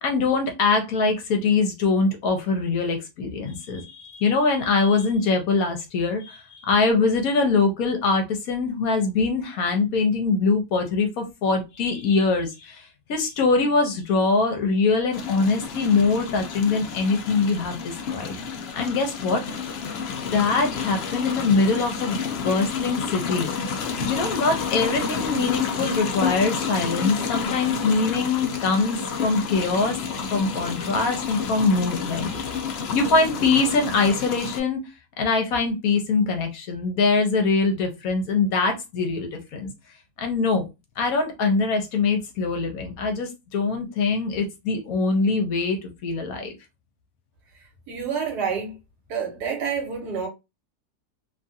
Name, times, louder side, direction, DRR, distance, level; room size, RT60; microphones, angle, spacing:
voice 1, 0.0-18.4 18.7-19.4 20.1-23.7 24.0-30.0 30.3-34.8 35.2-39.7 40.2-40.6 41.0-46.5, left 4 dB, 70° left, 1.0 m, -23 dB
sound 1, 15.1-34.6, left 6 dB, 90° left, 0.5 m, -30 dB
voice 2, 47.9-48.8 49.1-50.3, right 6 dB, 75° right, 1.5 m, -28 dB
3.0 x 2.3 x 2.6 m
omnidirectional pair, 1.7 m